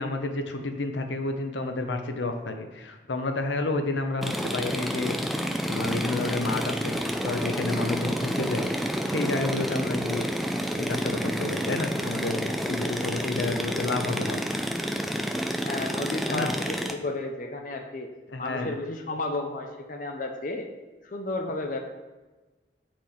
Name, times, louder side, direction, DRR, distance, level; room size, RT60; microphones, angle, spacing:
voice 1, 0.0-5.2 5.7-7.0 7.2-8.7 9.1-10.3 10.8-14.5 16.3-16.5 18.3-18.7, left 2 dB, 85° left, 6 dB, 0.8 m, -30 dB
sound 1, 4.2-16.9, equal, ahead, 0.4 m, -29 dB
voice 2, 15.6-18.1 18.4-20.7 21.0-21.8, left 2 dB, 45° left, 3 dB, 0.7 m, -32 dB
6.6 x 6.0 x 4.3 m, 1.2 s
head